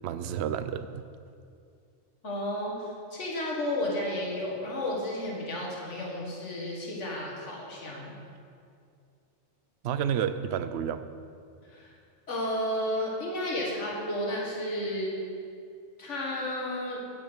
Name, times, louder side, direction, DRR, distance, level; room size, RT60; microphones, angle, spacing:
voice 1, 0.0-1.0 9.8-11.1, right 8 dB, 65° right, 12 dB, 0.8 m, -30 dB
voice 2, 2.2-8.1 11.7-11.9 12.3-15.2 16.0-17.0, left 1 dB, 75° left, -2 dB, 2.1 m, -32 dB
9.0 x 6.8 x 8.1 m, 2.4 s
omnidirectional pair, 1.2 m